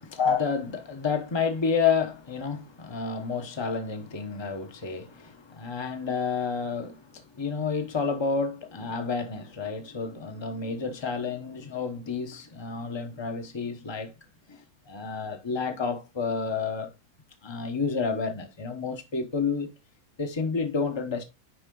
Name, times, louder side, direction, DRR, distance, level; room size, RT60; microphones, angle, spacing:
voice 1, 0.2-14.1 14.5-16.9 17.4-19.7 20.2-21.2, left 5 dB, 30° left, 0.5 m, -30 dB
9.9 x 3.7 x 3.8 m
omnidirectional pair, 2.3 m